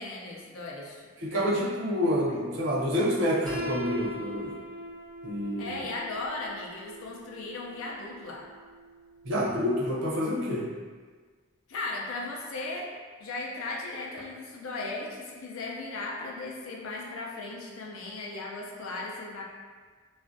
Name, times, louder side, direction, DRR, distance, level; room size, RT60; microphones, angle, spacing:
voice 1, 0.0-1.7 2.3-2.4 5.6-8.4 11.7-12.9 13.2-19.4, left 2 dB, 80° left, -2 dB, 0.4 m, -37 dB
voice 2, 1.2-4.6 5.2-5.7 9.2-10.7, equal, 60° right, -5 dB, 0.6 m, -28 dB
Piano, 3.5-9.3, right 1 dB, 5° left, 0.4 m, -40 dB
2.4 x 2.1 x 2.5 m, 1.5 s
head